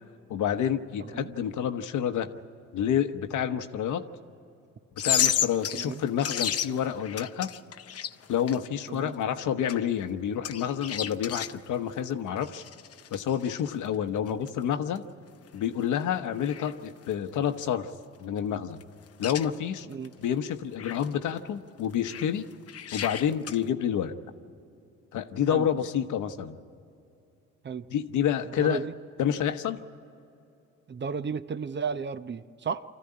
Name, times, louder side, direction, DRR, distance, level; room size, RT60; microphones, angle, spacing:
voice 1, 0.3-2.3 2.7-4.0 5.0-7.5 8.3-12.6 13.1-15.0 15.5-17.9 18.2-18.8 19.2-19.9 20.2-22.4 22.9-24.1 25.1-26.6 27.9-28.8 29.2-29.8, left 9 dB, 80° left, 8 dB, 1.1 m, -28 dB
voice 2, 1.0-1.3 5.7-6.0 8.9-9.1 19.9-20.1 25.5-25.7 27.6-27.9 28.5-28.9 30.9-32.8, right 5 dB, 35° right, 12 dB, 0.7 m, -34 dB
sound 1, 5.0-8.7 9.2-9.3 9.7-9.8 10.4-11.5 12.4-13.7 14.3-14.5 15.0-15.1 15.5-15.6 15.8-15.9 16.4-16.7 17.0-17.1 17.7-17.8 18.8-18.9 19.1-19.5 20.0-20.1 20.8-21.4 21.9-22.3 22.7-23.6, left 9 dB, 50° left, 0.8 m, -32 dB
25.0 x 14.5 x 9.9 m, 2.6 s
cardioid pair, 90°, 30 cm